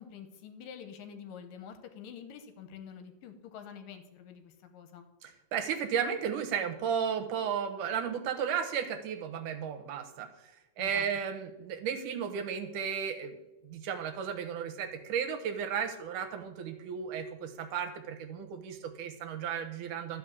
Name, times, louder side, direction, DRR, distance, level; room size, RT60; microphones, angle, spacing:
voice 1, 0.0-5.1 10.8-11.1, left 7 dB, 80° left, 8 dB, 2.8 m, -47 dB
voice 2, 5.2-10.3 10.8-13.4 13.6-20.2, right 7 dB, 75° right, 7 dB, 2.5 m, -34 dB
12.5 x 5.6 x 8.4 m, 1.0 s
omnidirectional pair, 3.9 m